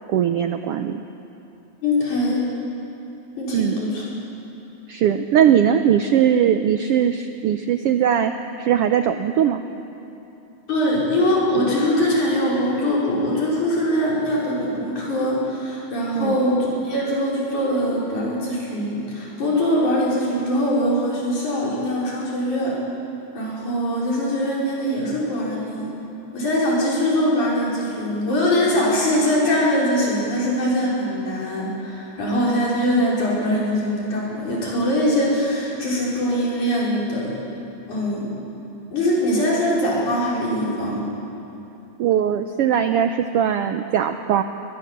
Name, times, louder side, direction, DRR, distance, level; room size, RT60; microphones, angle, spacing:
voice 1, 0.1-1.0 3.5-3.8 4.9-8.3 8.6-9.6 16.1-16.4 42.0-44.4, right 9 dB, 85° right, 8 dB, 1.3 m, -20 dB
voice 2, 1.8-2.4 3.4-4.0 10.7-22.8 23.3-25.9 26.3-37.3 37.9-38.5 38.9-41.1, equal, 75° left, -5 dB, 6.6 m, -22 dB
22.5 x 21.0 x 7.5 m, 2.8 s
omnidirectional pair, 3.5 m